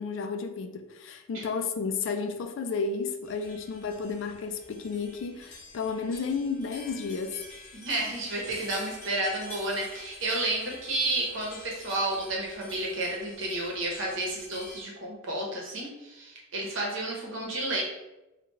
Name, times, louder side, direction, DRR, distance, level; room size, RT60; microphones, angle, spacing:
voice 1, 0.0-7.4, left 5 dB, 65° left, 8 dB, 0.3 m, -32 dB
sound 1, 3.2-14.8, left 1 dB, 35° left, 0.8 m, -47 dB
voice 2, 7.7-17.8, right 2 dB, 70° right, -2 dB, 0.9 m, -31 dB
3.3 x 2.3 x 3.1 m, 0.99 s
head